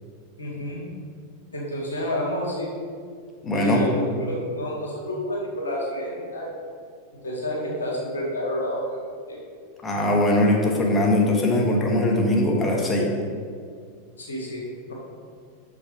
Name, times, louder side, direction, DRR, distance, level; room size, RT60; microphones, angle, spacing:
voice 1, 0.4-0.8 1.5-2.7 3.5-6.5 7.2-9.0 9.3-9.4 14.2-14.6 14.9-15.0, left 1 dB, 90° left, -3 dB, 1.9 m, -29 dB
voice 2, 3.4-3.8 9.8-13.1, left 1 dB, 25° left, -1 dB, 1.3 m, -21 dB
6.3 x 6.0 x 4.8 m, 2.1 s
hypercardioid pair, 100°, 0 cm